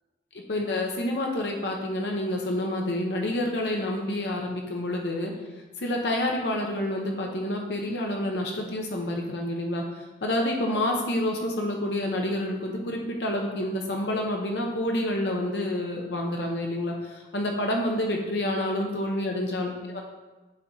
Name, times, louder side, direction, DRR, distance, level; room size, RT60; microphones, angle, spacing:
voice 1, 0.3-5.3 5.8-20.0, left 1 dB, 65° left, 1 dB, 0.8 m, -28 dB
9.0 x 4.0 x 3.8 m, 1.2 s
head